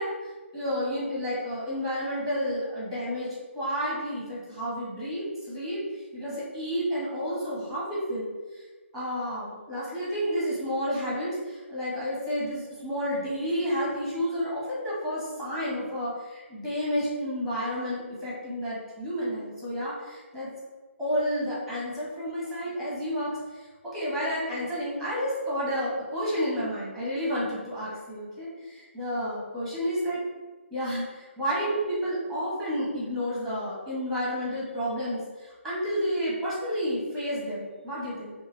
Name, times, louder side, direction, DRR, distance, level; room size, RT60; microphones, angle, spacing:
voice 1, 0.0-8.6 8.9-20.5 21.0-30.2 30.7-38.3, equal, 5° left, -8 dB, 1.1 m, -31 dB
5.5 x 2.5 x 3.3 m, 1.3 s
hypercardioid pair, 165°, 7 cm